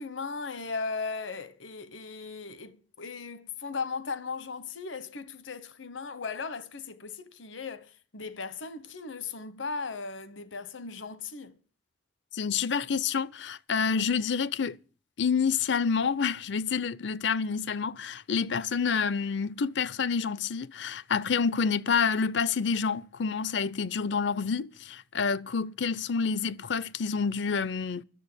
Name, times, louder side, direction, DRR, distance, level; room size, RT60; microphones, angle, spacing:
voice 1, 0.0-11.5, left 4 dB, 80° left, 1.1 m, -37 dB
voice 2, 12.3-14.8 15.2-28.0, left 6 dB, 65° left, 0.5 m, -28 dB
12.5 x 7.1 x 9.8 m
head